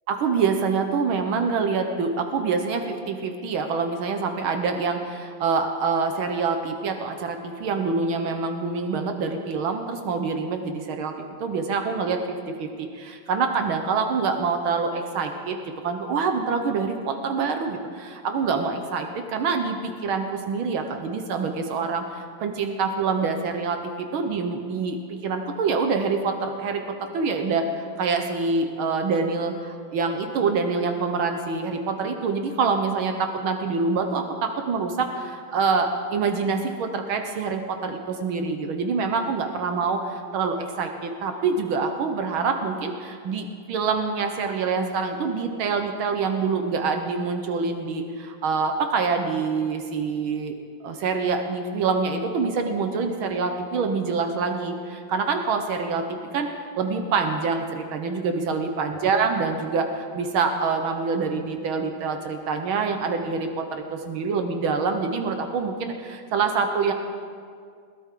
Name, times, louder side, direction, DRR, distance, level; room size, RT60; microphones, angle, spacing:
voice 1, 0.1-11.1 11.4-15.6 15.8-50.5 50.8-66.9, right 4 dB, 80° right, 5 dB, 1.8 m, -26 dB
21.0 x 16.0 x 3.8 m, 2.1 s
omnidirectional pair, 2.2 m